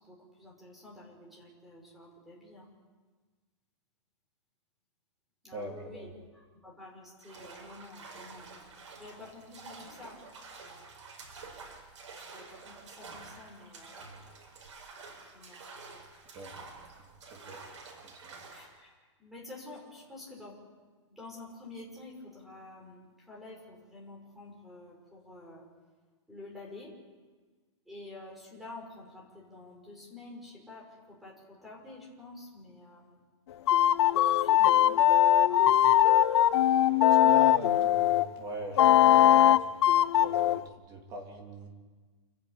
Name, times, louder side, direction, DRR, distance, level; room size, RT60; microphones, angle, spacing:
voice 1, 0.0-2.7 5.4-8.5 9.0-10.2 12.3-14.5 15.3-15.6 18.5-20.6 21.1-25.7 26.3-26.9 27.9-33.2 34.1-35.0 35.4-35.6, left 2 dB, ahead, -3 dB, 5.6 m, -49 dB
voice 2, 5.5-6.1 16.3-16.5 17.3-17.6 18.2-18.3 37.1-39.6 40.0-41.7, right 2 dB, 25° right, 1 dB, 3.3 m, -41 dB
sound 1, 7.2-18.8, right 4 dB, 70° right, 7.0 m, -49 dB
sound 2, 33.7-38.2 38.8-40.6, left 12 dB, 60° left, 0.6 m, -21 dB
29.5 x 10.5 x 9.1 m, 1.4 s
hypercardioid pair, 165°, 16 cm